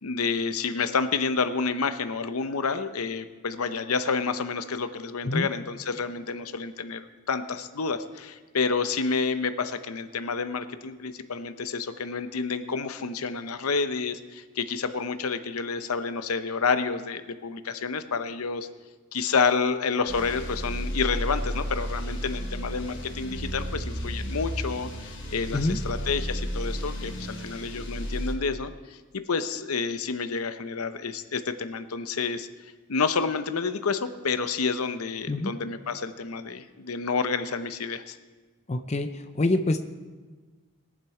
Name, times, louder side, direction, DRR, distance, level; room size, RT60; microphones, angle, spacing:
voice 1, 0.0-18.7 19.1-32.5 32.9-38.2, left 5 dB, 90° left, 10 dB, 0.7 m, -29 dB
sound 1, 20.1-28.3, equal, 60° left, 3.9 m, -33 dB
voice 2, 38.7-39.8, left 2 dB, 30° left, 8 dB, 0.5 m, -26 dB
20.5 x 7.5 x 4.8 m, 1.4 s
head